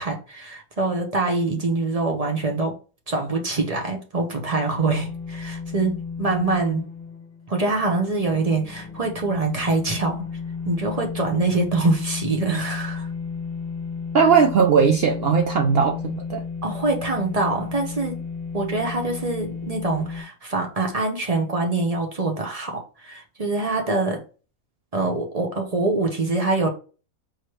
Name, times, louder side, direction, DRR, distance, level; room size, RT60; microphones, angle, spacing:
voice 1, 0.0-2.8 3.1-6.9 7.5-10.3 10.6-13.1 16.6-18.2 18.5-24.2 24.9-26.7, right 3 dB, 30° right, 0.8 m, -24 dB
sound 1, 4.7-20.2, left 5 dB, 45° left, 1.0 m, -33 dB
voice 2, 14.1-16.4, right 6 dB, 65° right, 0.6 m, -18 dB
4.8 x 3.1 x 3.1 m
omnidirectional pair, 1.5 m